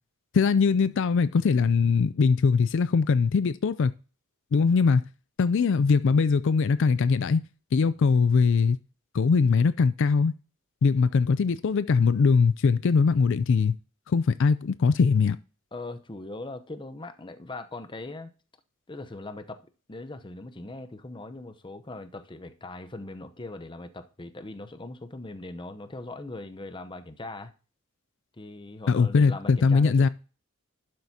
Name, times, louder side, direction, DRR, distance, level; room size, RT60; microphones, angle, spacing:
voice 1, 0.3-3.9 4.5-5.0 5.4-7.4 7.7-8.8 9.1-10.3 10.8-13.8 14.1-15.4 28.9-30.1, left 5 dB, 60° left, 0.4 m, -21 dB
voice 2, 15.7-18.3 18.9-27.5 28.4-30.1, left 2 dB, 25° left, 0.7 m, -40 dB
11.5 x 7.7 x 2.8 m
head